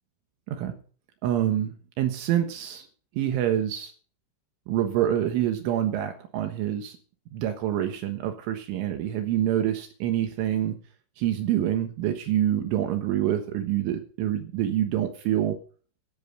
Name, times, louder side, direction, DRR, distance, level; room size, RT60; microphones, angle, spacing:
voice 1, 1.2-2.8 3.2-3.9 4.7-7.0 7.3-10.8 11.2-15.6, right 11 dB, 75° right, 6 dB, 3.8 m, -26 dB
13.5 x 9.3 x 6.8 m, 0.42 s
omnidirectional pair, 5.7 m